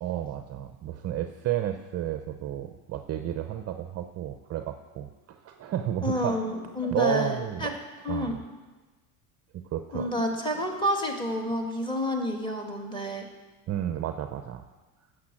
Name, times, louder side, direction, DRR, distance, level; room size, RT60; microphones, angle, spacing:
voice 1, 0.0-6.4 6.9-7.7 8.1-8.4 9.5-10.1 13.7-14.6, right 11 dB, 35° right, 7 dB, 0.6 m, -32 dB
voice 2, 6.0-7.8 8.0-8.4 9.9-13.3, equal, 10° left, 2 dB, 1.9 m, -29 dB
9.7 x 6.6 x 7.5 m, 1.2 s
supercardioid pair, 105°, 46 cm